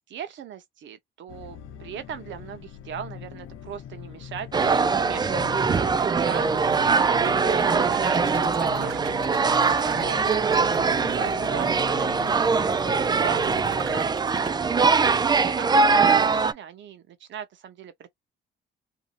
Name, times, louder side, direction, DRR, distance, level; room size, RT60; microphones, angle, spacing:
voice 1, 0.0-5.5 6.2-9.2 9.5-10.4 10.8-13.4 13.7-14.1 14.8-18.1, right 9 dB, 70° right, 0.8 m, -39 dB
sound 1, 1.3-14.0, left 9 dB, 80° left, 0.7 m, -42 dB
sound 2, 4.5-16.5, right 4 dB, 20° right, 0.3 m, -22 dB
sound 3, 5.4-14.5, right 12 dB, 90° right, 0.5 m, -40 dB
2.8 x 2.7 x 2.5 m
cardioid pair, 90°, 20 cm